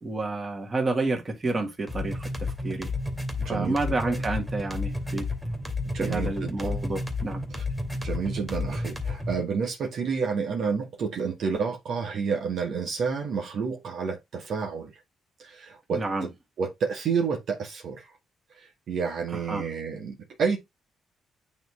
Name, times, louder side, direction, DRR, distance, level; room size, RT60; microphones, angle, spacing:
voice 1, 0.0-2.9 3.5-5.3 6.0-7.4 15.9-16.3 19.3-19.7, right 2 dB, 25° right, 2.2 m, -30 dB
sound 1, 1.9-9.4, left 2 dB, ahead, 2.1 m, -31 dB
voice 2, 3.4-3.8 4.0-4.2 5.8-6.9 7.5-7.6 8.0-14.9 15.4-16.3 16.6-18.1 18.5-20.6, right 5 dB, 65° right, 1.4 m, -30 dB
9.0 x 3.2 x 3.5 m
cardioid pair, 90°, 0 cm